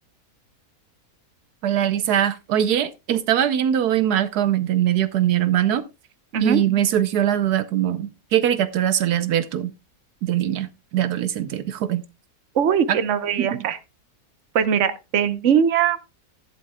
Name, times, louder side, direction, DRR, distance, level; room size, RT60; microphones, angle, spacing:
voice 1, 1.6-5.8 6.4-9.7 10.2-12.0 12.9-13.0 13.4-13.6, right 10 dB, 80° right, 1.3 m, -22 dB
voice 2, 12.5-13.8 14.5-16.0, right 8 dB, 55° right, 1.2 m, -20 dB
14.0 x 11.0 x 2.3 m
omnidirectional pair, 1.7 m